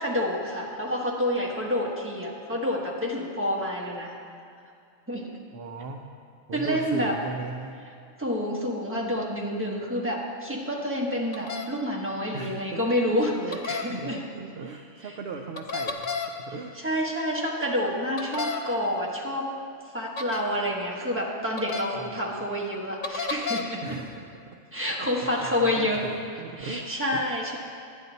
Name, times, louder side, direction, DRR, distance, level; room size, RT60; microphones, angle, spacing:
voice 1, 0.0-4.1 5.1-5.4 6.5-7.1 8.2-14.2 16.8-19.5 19.9-24.0 24.7-26.0 26.6-27.6, equal, 10° right, -3 dB, 1.2 m, -28 dB
voice 2, 5.5-6.0 6.5-7.7 12.3-13.0 13.3-13.6 13.9-16.7 22.0-22.2 23.8-24.1 25.0-27.2, right 3 dB, 60° right, 3 dB, 0.7 m, -38 dB
sound 1, 11.3-11.6 13.5-13.8 15.6-16.3 18.2-18.6 20.2-20.4 21.6-21.8 23.0-23.6, left 5 dB, 50° left, 0.6 m, -31 dB
11.5 x 9.6 x 4.0 m, 2.3 s
omnidirectional pair, 1.4 m